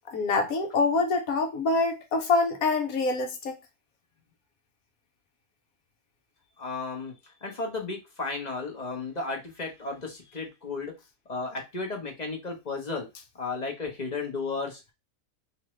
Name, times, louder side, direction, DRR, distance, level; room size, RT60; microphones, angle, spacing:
voice 1, 0.1-3.5, left 3 dB, 75° left, 1.3 m, -25 dB
voice 2, 6.6-10.9 11.3-13.1 13.3-14.8, left 3 dB, 35° left, 0.9 m, -34 dB
3.6 x 3.0 x 3.1 m
omnidirectional pair, 1.5 m